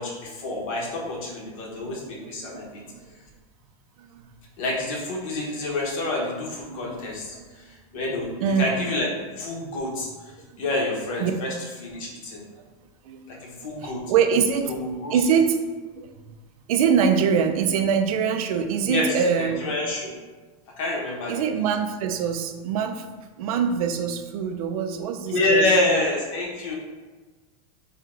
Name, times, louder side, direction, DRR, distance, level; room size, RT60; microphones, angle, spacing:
voice 1, 0.0-2.8 4.6-8.3 8.6-9.1 9.4-10.1 10.6-11.5 11.8-12.4 13.3-14.0 14.7-15.2 18.8-20.1 20.8-21.6 25.3-26.8, left 2 dB, 65° left, -2 dB, 1.2 m, -27 dB
voice 2, 2.0-2.6 2.9-3.0 4.0-4.2 6.7-7.5 8.4-8.7 11.2-11.3 12.0-12.1 13.0-15.6 15.9-16.1 16.7-19.6 21.3-23.0 23.4-26.0, right 7 dB, 80° right, 6 dB, 0.5 m, -24 dB
4.2 x 2.3 x 3.7 m, 1.3 s
supercardioid pair, 165°, 18 cm